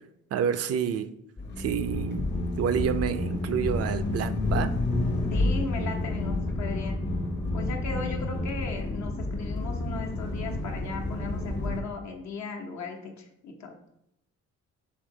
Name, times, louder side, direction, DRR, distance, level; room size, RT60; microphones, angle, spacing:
voice 1, 0.3-1.1 1.6-2.2 2.6-4.7, right 8 dB, 55° right, 11 dB, 0.5 m, -28 dB
sound 1, 1.4-11.8, left 2 dB, 35° left, 0.9 m, -31 dB
sound 2, 1.9-8.5, left 1 dB, 20° left, 0.5 m, -34 dB
voice 2, 5.3-7.0 7.5-13.8, left 4 dB, 65° left, 2 dB, 1.0 m, -37 dB
5.2 x 2.7 x 3.8 m, 0.78 s
cardioid pair, 90°, 30 cm